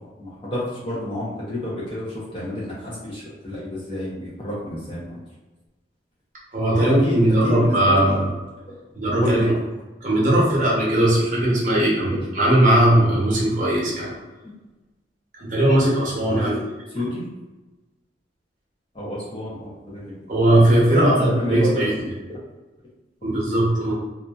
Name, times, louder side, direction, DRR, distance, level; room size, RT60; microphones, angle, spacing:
voice 1, 0.2-5.2 6.7-8.2 9.2-9.5 14.4-14.5 16.3-16.6 16.9-17.2 18.9-20.0 20.9-21.9 22.3-22.4, left 1 dB, 30° left, -7 dB, 0.8 m, -29 dB
voice 2, 6.5-8.3 8.9-9.6 10.0-14.2 15.3-16.5 20.3-22.1 23.2-24.0, right 1 dB, 40° right, -6 dB, 0.9 m, -19 dB
2.6 x 2.6 x 2.3 m, 1.1 s
head